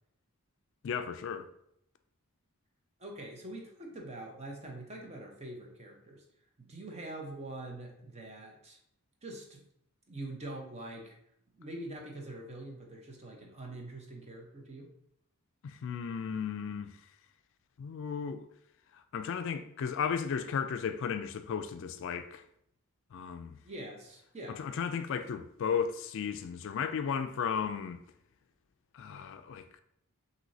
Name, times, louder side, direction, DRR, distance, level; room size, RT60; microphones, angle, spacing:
voice 1, 0.8-1.5 15.6-16.9 17.8-18.4 19.1-22.4 23.1-23.6 24.6-28.0 28.9-29.8, left 7 dB, 60° left, 0.3 m, -34 dB
voice 2, 3.0-6.2 6.6-8.8 9.2-9.7 10.1-11.2 11.6-14.9 23.6-24.6, right 1 dB, 30° right, 0.8 m, -44 dB
6.1 x 2.7 x 2.7 m
head